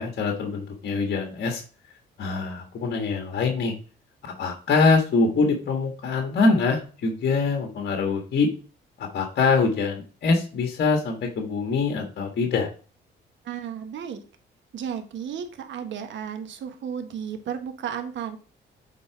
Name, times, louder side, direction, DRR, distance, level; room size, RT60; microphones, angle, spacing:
voice 1, 0.0-1.6 2.2-3.7 4.4-8.5 9.0-12.7, left 4 dB, 55° left, 3 dB, 1.6 m, -24 dB
voice 2, 13.4-14.2 14.7-18.4, right 8 dB, 70° right, 7 dB, 1.3 m, -33 dB
8.5 x 3.8 x 4.6 m, 0.37 s
cardioid pair, 90°, 20 cm